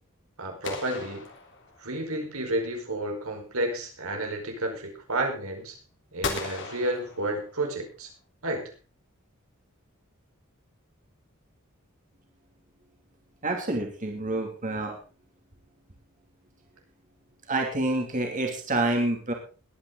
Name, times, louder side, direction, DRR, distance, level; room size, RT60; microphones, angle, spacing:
voice 1, 0.4-1.2 1.8-5.8 6.1-8.1 8.4-8.6, right 1 dB, 85° right, 2 dB, 5.1 m, -31 dB
sound 1, 0.6-2.1 6.2-7.8, left 4 dB, 60° left, 3.5 m, -36 dB
voice 2, 13.4-15.0 17.5-19.3, right 2 dB, 40° right, 2 dB, 2.9 m, -27 dB
21.0 x 9.8 x 4.0 m, 0.36 s
head